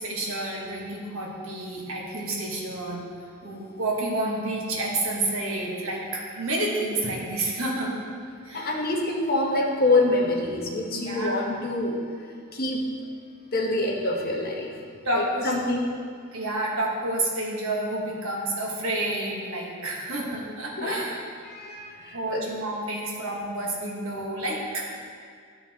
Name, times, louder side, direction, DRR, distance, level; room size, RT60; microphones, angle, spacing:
voice 1, 0.0-3.0 3.4-8.0 8.4-8.9 10.9-11.4 15.0-15.5 16.3-21.2 22.1-25.0, right 2 dB, 70° right, -2 dB, 1.4 m, -29 dB
voice 2, 8.5-12.0 12.5-12.8 13.5-14.7 15.1-15.9 20.8-21.0 21.4-22.4, left 2 dB, 45° left, -1 dB, 1.1 m, -26 dB
12.5 x 4.5 x 3.6 m, 2.1 s
head